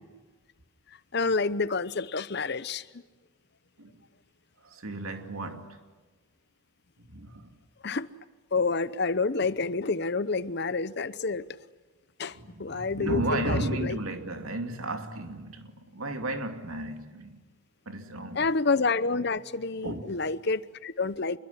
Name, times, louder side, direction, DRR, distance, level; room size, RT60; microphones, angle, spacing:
voice 1, 1.1-2.8 7.8-8.1 8.5-11.5 12.2-14.0 18.3-21.4, left 4 dB, 50° left, 0.8 m, -28 dB
voice 2, 4.6-5.8 7.1-7.5 12.3-17.4 17.9-18.5 19.8-20.1, right 1 dB, 80° right, 2.6 m, -33 dB
27.0 x 22.0 x 9.9 m
head